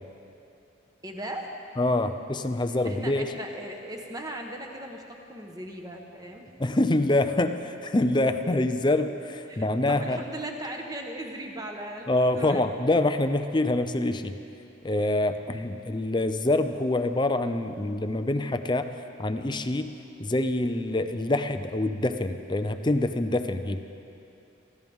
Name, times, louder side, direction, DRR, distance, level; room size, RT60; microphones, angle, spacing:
voice 1, 1.0-1.5 2.8-6.5 9.5-12.7, right 1 dB, 20° right, 2 dB, 1.2 m, -38 dB
voice 2, 1.8-3.3 6.6-10.2 12.1-14.3 14.8-18.9 19.2-19.9 20.2-23.8, left 2 dB, 25° left, 8 dB, 0.5 m, -25 dB
24.0 x 16.0 x 3.6 m, 2.7 s
head